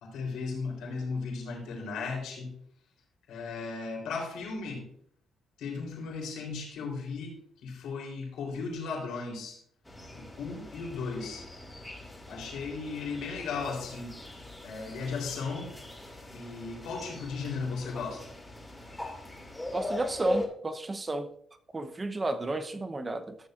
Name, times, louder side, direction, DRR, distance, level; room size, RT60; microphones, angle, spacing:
voice 1, 0.0-2.6 3.3-4.9 5.6-9.6 10.1-11.5 12.3-15.7 16.3-18.3, left 4 dB, 85° left, 3.6 m, -36 dB
sound 1, 9.9-20.5, left 1 dB, 10° left, 2.4 m, -41 dB
voice 2, 19.7-21.3 21.7-23.4, right 2 dB, 25° right, 0.8 m, -32 dB
13.5 x 7.0 x 2.5 m
cardioid pair, 90°, 0 cm